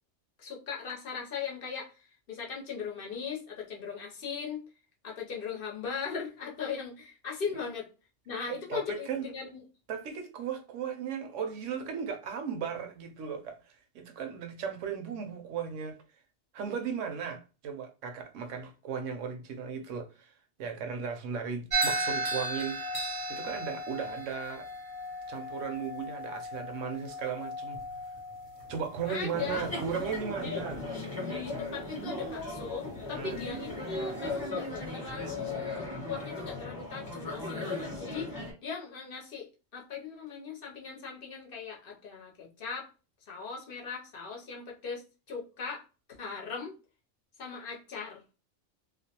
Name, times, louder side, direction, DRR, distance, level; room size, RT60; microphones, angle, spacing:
voice 1, 0.4-4.6 5.0-7.9 8.3-9.6 29.1-29.7 30.4-30.6 31.3-42.9 43.3-45.8 46.1-46.7 47.4-48.2, left 6 dB, 55° left, 0.7 m, -39 dB
voice 2, 8.5-9.3 9.9-16.0 16.5-20.3 20.6-22.8 23.3-24.7 25.3-27.8 28.7-30.8 33.1-33.4, right 6 dB, 75° right, 0.9 m, -36 dB
sound 1, 21.7-30.1, right 1 dB, 40° right, 0.5 m, -36 dB
sound 2, 29.3-38.5, left 2 dB, 20° left, 0.8 m, -37 dB
2.5 x 2.0 x 2.7 m
omnidirectional pair, 1.3 m